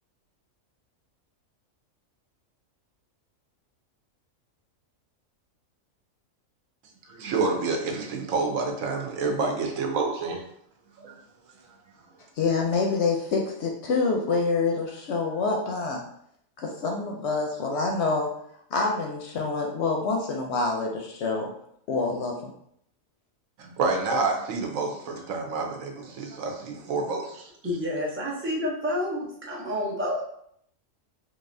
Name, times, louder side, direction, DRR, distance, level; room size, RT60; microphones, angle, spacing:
voice 1, 7.1-10.4 11.0-11.2 23.6-27.5, right 3 dB, 80° right, 2 dB, 1.1 m, -28 dB
voice 2, 12.4-16.0 16.6-18.3 18.7-21.5 21.9-22.5, left 4 dB, 65° left, 1 dB, 0.7 m, -26 dB
voice 3, 27.6-30.2, left 1 dB, 15° right, -4 dB, 0.5 m, -29 dB
3.9 x 2.7 x 2.6 m, 0.69 s
omnidirectional pair, 1.4 m